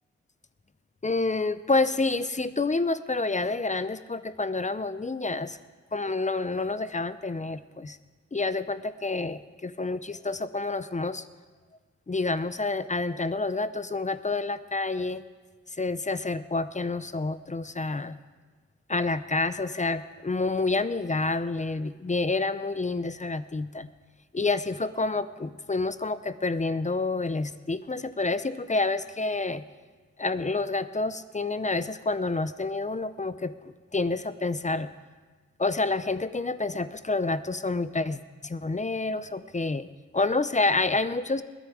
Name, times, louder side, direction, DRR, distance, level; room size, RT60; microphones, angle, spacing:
voice 1, 1.0-5.6 5.9-8.0 8.3-11.2 12.1-15.2 15.8-18.2 18.9-23.9 24.3-29.6 30.2-34.9 35.6-39.9 40.1-41.4, left 3 dB, 25° left, 14 dB, 0.6 m, -28 dB
21.0 x 10.0 x 4.9 m, 1.4 s
cardioid pair, 75°, 29 cm